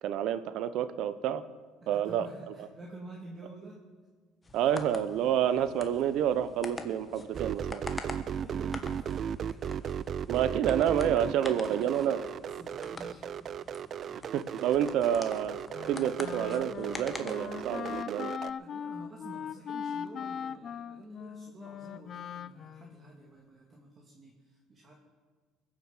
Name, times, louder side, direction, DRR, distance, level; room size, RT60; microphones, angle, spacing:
voice 1, 0.0-1.4 1.9-2.7 4.5-7.8 10.3-12.2 14.3-15.6 15.9-18.3, right 10 dB, 60° right, 13 dB, 0.9 m, -29 dB
voice 2, 1.8-3.9 4.5-4.7 8.2-9.8 11.2-11.5 12.1-13.3 18.5-24.9, right 2 dB, 25° right, -1 dB, 2.2 m, -50 dB
sound 1, 4.4-18.0, left 3 dB, 15° left, 1.3 m, -46 dB
sound 2, 7.3-18.5, right 8 dB, 40° right, 0.4 m, -36 dB
Wind instrument woodwind instrument, 15.7-23.1, left 8 dB, 40° left, 0.5 m, -40 dB
21.5 x 7.7 x 7.4 m, 1.4 s
cardioid pair, 125°, 0 cm